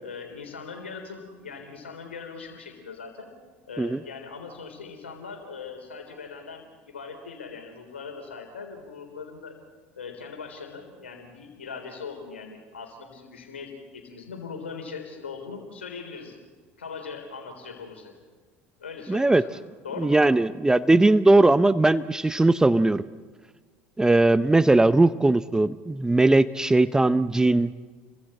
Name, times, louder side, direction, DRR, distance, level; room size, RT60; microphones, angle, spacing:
voice 1, 0.0-3.3 3.7-9.6 10.0-16.4 16.8-18.1 18.8-20.2, left 5 dB, 85° left, 4 dB, 3.5 m, -40 dB
voice 2, 19.1-19.4 20.0-23.0 24.0-27.7, right 2 dB, 10° right, 15 dB, 0.6 m, -19 dB
30.0 x 23.5 x 4.3 m, 1.4 s
figure-of-eight pair, 65°, 6 cm